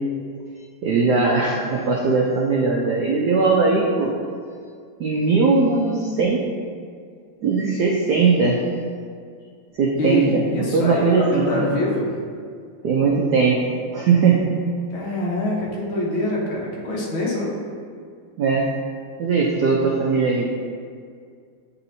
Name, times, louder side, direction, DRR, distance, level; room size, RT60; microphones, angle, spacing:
voice 1, 0.8-4.1 5.0-6.4 7.4-8.6 9.7-11.7 12.8-13.6 13.9-14.5 18.4-18.7 19.2-20.4, right 4 dB, 75° right, -2 dB, 0.9 m, -19 dB
voice 2, 10.0-12.1 14.9-17.5, left 1 dB, 65° left, -3 dB, 1.8 m, -24 dB
8.8 x 4.2 x 2.7 m, 2.1 s
omnidirectional pair, 2.4 m